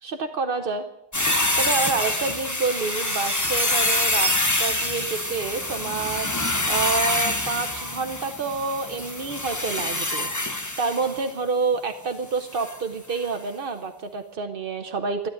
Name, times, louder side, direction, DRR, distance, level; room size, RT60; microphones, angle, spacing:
voice 1, 0.0-0.8 1.6-15.3, right 4 dB, 55° right, 6 dB, 0.6 m, -28 dB
sound 1, 1.1-11.3 12.5-12.8 13.1-13.2, left 1 dB, 20° left, 0.5 m, -26 dB
12.5 x 12.0 x 9.2 m, 0.81 s
omnidirectional pair, 2.3 m